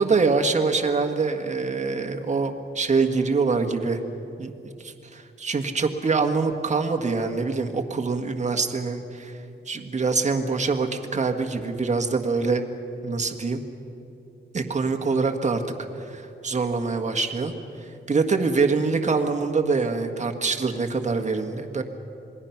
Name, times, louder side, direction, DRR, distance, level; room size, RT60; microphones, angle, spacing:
voice 1, 0.0-4.0 4.4-9.3 9.7-12.6 13.0-13.6 14.5-15.6 16.0-17.5 17.8-21.8, right 4 dB, 35° right, 5 dB, 1.7 m, -24 dB
27.0 x 20.0 x 5.9 m, 2.8 s
cardioid pair, 110°, 21 cm